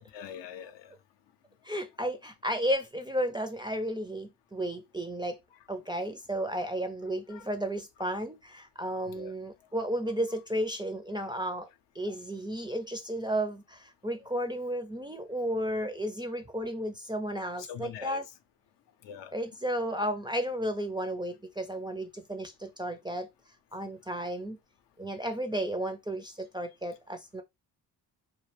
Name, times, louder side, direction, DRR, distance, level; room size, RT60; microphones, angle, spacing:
voice 1, 0.1-0.9 7.3-7.5 9.1-9.3 11.2-11.3 14.2-14.3 17.6-18.2 19.0-19.3, left 8 dB, 70° left, 0.6 m, -43 dB
voice 2, 1.6-5.4 5.7-11.7 11.9-18.3 19.3-23.3 23.7-24.6 25.0-27.4, right 1 dB, 10° right, 0.4 m, -33 dB
2.2 x 2.2 x 3.2 m
supercardioid pair, 65°, 45 cm